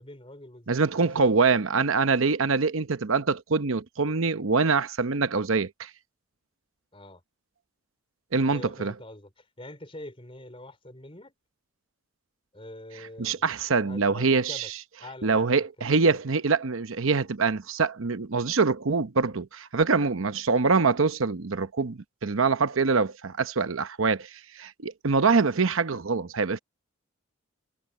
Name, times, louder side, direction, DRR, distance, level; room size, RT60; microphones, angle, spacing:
voice 1, 0.0-1.4 6.9-7.2 8.5-11.3 12.5-14.7 15.0-16.2, left 1 dB, 25° left, 4.5 m, -45 dB
voice 2, 0.7-5.9 8.3-8.9 13.2-14.7 15.2-26.6, right 4 dB, 70° right, 0.8 m, -24 dB
head